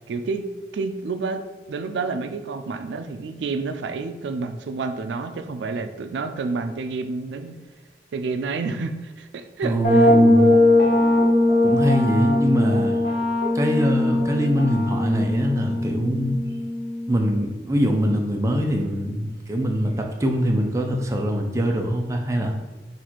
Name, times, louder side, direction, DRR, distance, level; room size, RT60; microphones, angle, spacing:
voice 1, 0.1-0.4 0.7-1.4 1.7-7.5 8.1-10.1, right 4 dB, 80° right, 8 dB, 0.3 m, -29 dB
voice 2, 9.6-10.5 11.6-13.0 13.5-16.4 17.1-22.5, equal, 15° right, 2 dB, 0.4 m, -23 dB
sound 1, 9.8-17.5, left 1 dB, 65° left, 1.2 m, -20 dB
4.1 x 2.5 x 4.4 m, 1.2 s
head